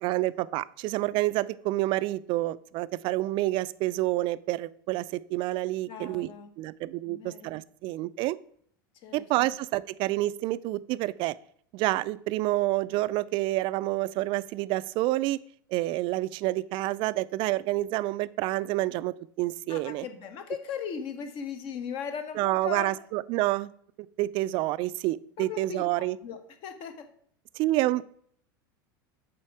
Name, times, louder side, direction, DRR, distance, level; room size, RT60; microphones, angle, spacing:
voice 1, 0.0-6.3 6.6-8.4 9.1-11.3 11.7-15.4 15.7-20.1 22.4-23.7 24.2-26.2 27.6-28.1, right 17 dB, 50° right, 17 dB, 0.4 m, -28 dB
voice 2, 5.9-6.5 7.1-7.5 9.0-9.2 19.7-22.9 25.4-27.1, left 7 dB, 50° left, 8 dB, 1.2 m, -38 dB
7.5 x 4.2 x 4.7 m, 0.62 s
hypercardioid pair, 100°, 11 cm